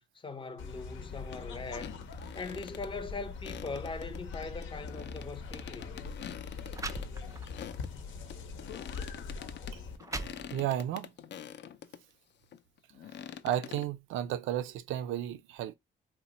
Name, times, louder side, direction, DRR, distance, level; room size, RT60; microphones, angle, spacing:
voice 1, 0.1-2.0 2.3-6.0, left 3 dB, 25° left, 0.7 m, -41 dB
sound 1, 0.6-10.0, left 4 dB, 75° left, 0.8 m, -42 dB
sound 2, 1.3-1.4 1.7-2.9 3.3-7.9 8.3-12.0 12.5-13.9, left 9 dB, 60° left, 0.5 m, -46 dB
sound 3, 5.5-5.7 6.4-6.5 6.7-7.7 8.2-8.4 9.2-9.3 9.8-10.9, right 3 dB, 15° right, 0.4 m, -41 dB
voice 2, 10.5-11.1 13.4-15.7, right 11 dB, 85° right, 0.4 m, -33 dB
2.9 x 2.1 x 4.1 m
cardioid pair, 90°, 20 cm